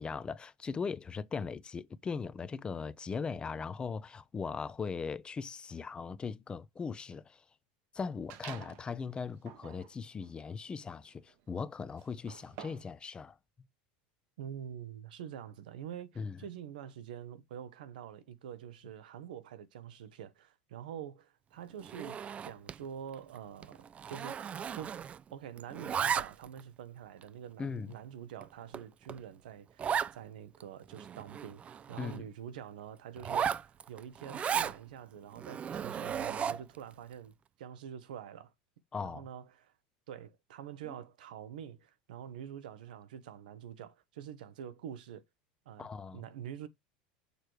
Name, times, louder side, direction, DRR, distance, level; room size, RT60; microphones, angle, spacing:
voice 1, 0.0-7.4 7.9-13.4 16.2-16.4 27.6-27.9 32.0-32.2 38.9-39.2 45.8-46.2, left 5 dB, 20° left, 0.5 m, -39 dB
sound 1, 8.3-8.9 9.4-13.0, right 10 dB, 60° right, 1.1 m, -50 dB
voice 2, 14.4-25.0 25.3-38.5 39.0-39.7 40.1-45.2 45.7-46.7, right 9 dB, 85° right, 1.0 m, -46 dB
Zipper (clothing), 21.8-22.8 23.1-23.4 23.6-25.3 25.6-26.6 27.2-27.3 27.9-28.0 28.4-28.5 28.7-28.8 29.1-29.2 29.8-30.1 30.6-30.7 30.9-32.2 33.2-34.8 35.4-36.8, right 8 dB, 30° right, 0.4 m, -35 dB
6.7 x 3.2 x 4.5 m
supercardioid pair, 110°, 5 cm